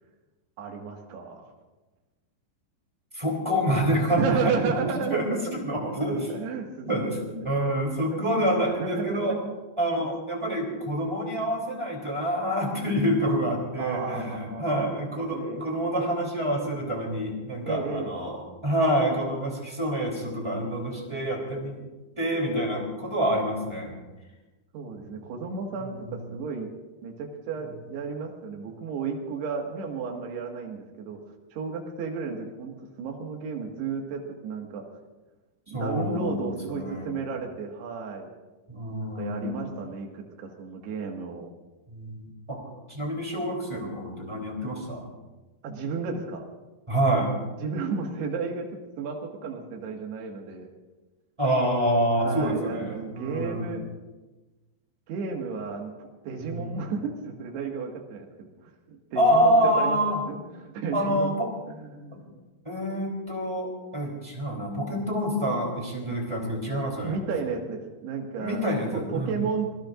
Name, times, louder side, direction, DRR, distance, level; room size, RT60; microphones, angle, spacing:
voice 1, 0.6-1.4 4.2-5.4 6.1-7.5 8.1-8.2 8.7-10.1 13.8-14.9 15.3-15.6 17.7-18.1 24.7-26.7 27.0-31.2 31.5-34.8 35.7-38.3 39.0-41.5 45.6-46.4 47.6-48.7 49.0-50.7 52.2-53.9 55.1-60.0 60.2-61.3 61.8-62.4 67.0-68.6 68.9-69.7, right 5 dB, 65° right, 1 dB, 3.7 m, -33 dB
voice 2, 3.1-6.4 6.8-9.4 9.8-21.8 22.2-23.9 25.0-25.2 25.8-26.2 35.7-37.1 38.7-39.6 41.9-42.6 42.9-45.1 46.9-47.3 51.4-53.7 56.4-56.7 59.1-60.2 60.9-61.5 62.1-62.2 62.6-67.2 68.4-69.4, equal, 10° right, -1 dB, 2.4 m, -27 dB
27.0 x 19.0 x 2.6 m, 1.2 s
omnidirectional pair, 5.4 m